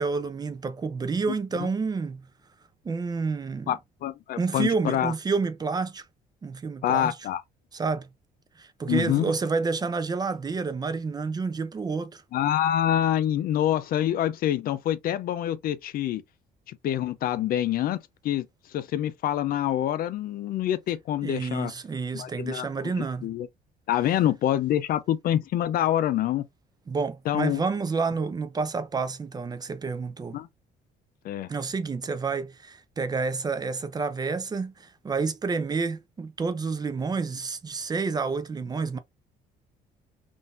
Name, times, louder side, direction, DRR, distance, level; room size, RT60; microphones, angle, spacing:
voice 1, 0.0-2.3 2.8-3.7 4.4-6.0 6.4-7.2 7.7-8.1 8.6-12.2 21.2-23.3 26.9-30.4 31.5-39.0, right 4 dB, 25° right, 0.4 m, -29 dB
voice 2, 3.7-5.1 6.8-7.4 8.9-9.3 12.3-16.2 16.7-18.0 18.2-18.5 18.7-21.7 22.1-23.5 23.9-26.4 27.3-27.6 30.3-30.5 31.2-31.5, left 11 dB, 60° left, 0.5 m, -26 dB
3.8 x 2.5 x 2.4 m
cardioid pair, 110°, 17 cm